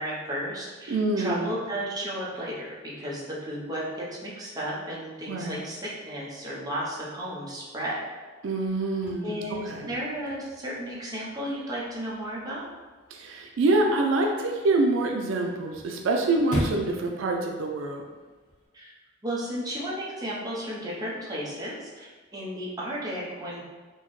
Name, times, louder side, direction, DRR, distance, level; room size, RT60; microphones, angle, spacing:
voice 1, 0.0-8.0 9.2-12.6 18.7-18.9 19.2-23.7, equal, 20° right, -6 dB, 0.7 m, -34 dB
voice 2, 0.9-1.5 5.3-5.6 8.4-9.4 9.7-9.9 13.1-18.0, right 2 dB, 80° right, 2 dB, 0.4 m, -26 dB
Chirp tweet / Car / Slam, 8.7-18.7, equal, 40° left, 0.8 m, -40 dB
4.4 x 2.1 x 3.1 m, 1.3 s
head